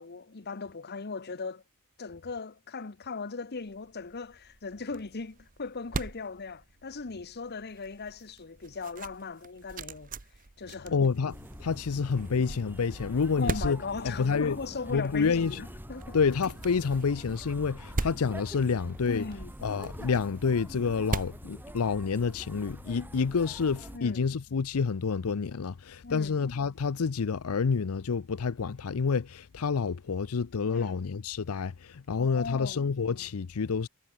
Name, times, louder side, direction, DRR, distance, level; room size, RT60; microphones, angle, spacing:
voice 1, 0.0-1.6 2.0-10.1 10.6-11.0 13.4-16.2 19.1-19.5 23.9-24.3 26.0-26.4 30.7-31.0 32.2-32.9, left 4 dB, 50° left, 1.0 m, -38 dB
sound 1, 3.7-22.4, right 2 dB, 40° right, 1.0 m, -41 dB
voice 2, 10.9-15.6 16.1-33.9, left 5 dB, 80° left, 0.6 m, -29 dB
sound 2, 11.3-24.0, equal, 10° right, 2.7 m, -45 dB
head